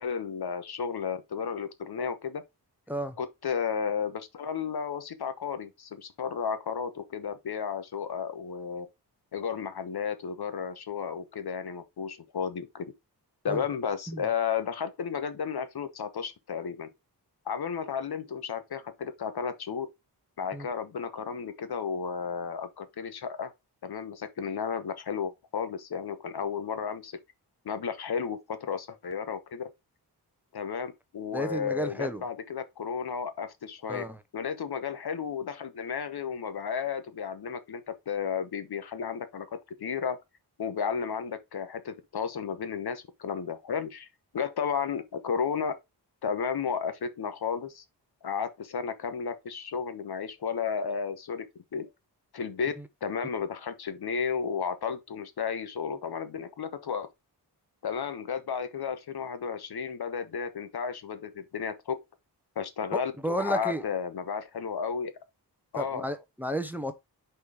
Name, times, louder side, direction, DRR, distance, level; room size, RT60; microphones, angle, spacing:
voice 1, 0.0-2.4 3.2-8.9 9.3-12.8 13.4-16.9 17.5-19.9 20.4-23.5 23.8-27.1 27.6-29.7 30.5-34.0 34.3-39.5 39.8-40.2 40.6-44.1 44.3-45.7 46.2-47.8 48.2-51.5 51.7-51.9 52.3-52.7 53.0-57.1 57.8-62.0 62.6-65.1 65.7-66.0, left 6 dB, 65° left, 1.1 m, -33 dB
voice 2, 31.3-32.2 33.9-34.2 62.9-63.8 65.8-66.9, right 1 dB, 5° right, 0.8 m, -32 dB
5.3 x 4.5 x 4.8 m
wide cardioid pair, 115°, 40 cm